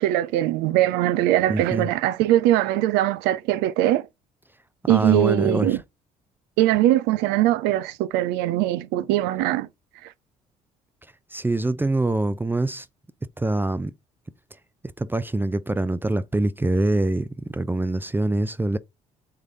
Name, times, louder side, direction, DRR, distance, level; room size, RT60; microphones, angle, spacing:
voice 1, 0.0-4.0 4.9-5.8 6.6-9.7, right 14 dB, 70° right, 0.4 m, -21 dB
voice 2, 1.5-1.9 4.9-5.8 11.3-12.9 13.4-13.9 15.0-17.3 17.5-18.8, right 2 dB, 10° right, 0.4 m, -24 dB
3.7 x 3.2 x 3.8 m
hypercardioid pair, 50°, 18 cm